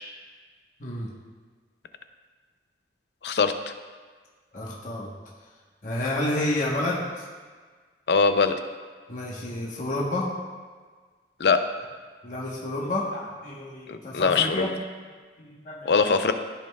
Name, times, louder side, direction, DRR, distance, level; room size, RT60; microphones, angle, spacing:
voice 1, 0.8-1.1 4.5-5.1 5.8-7.2 9.1-10.3 12.2-14.7 15.4-16.0, left 1 dB, 45° left, -4 dB, 1.1 m, -30 dB
voice 2, 8.1-8.6 11.4-11.6 13.9-14.7 15.9-16.3, left 5 dB, 65° left, 8 dB, 0.5 m, -21 dB
14.0 x 5.3 x 2.3 m, 1.5 s
head